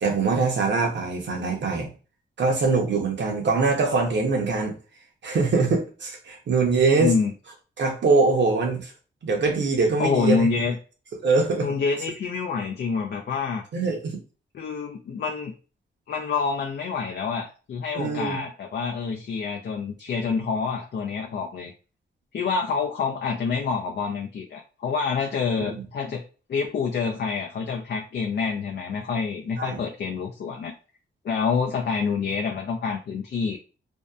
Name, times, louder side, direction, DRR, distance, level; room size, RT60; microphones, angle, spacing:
voice 1, 0.0-1.9 2.4-4.8 5.2-7.1 7.8-8.9 9.2-10.5 11.2-11.7 13.7-14.2 17.9-18.4 25.6-25.8 29.6-29.8, right 4 dB, 65° right, 0.7 m, -23 dB
voice 2, 7.0-7.3 10.0-10.8 11.6-13.6 14.5-15.5 16.1-21.7 22.3-26.2 26.5-30.7 31.2-33.6, left 5 dB, 55° left, 0.4 m, -27 dB
2.6 x 2.1 x 2.3 m
wide cardioid pair, 105°, 20 cm